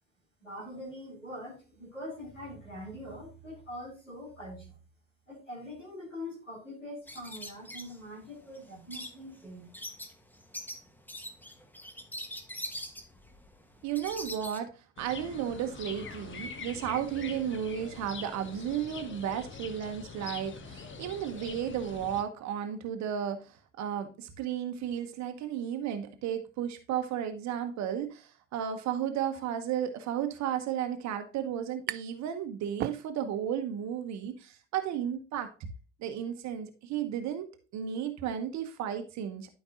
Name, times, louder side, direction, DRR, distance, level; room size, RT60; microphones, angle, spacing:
voice 1, 0.4-4.8 5.3-9.7, left 1 dB, 90° left, 2.8 m, -43 dB
sound 1, 7.1-14.6, equal, 5° left, 1.4 m, -43 dB
voice 2, 13.8-35.5 36.0-39.5, right 9 dB, 50° right, 1.0 m, -34 dB
sound 2, 15.0-22.2, left 5 dB, 30° left, 1.2 m, -44 dB
sound 3, 31.2-32.3 32.6-33.5, right 14 dB, 30° right, 0.4 m, -38 dB
12.5 x 5.3 x 2.5 m
figure-of-eight pair, 55°, 37 cm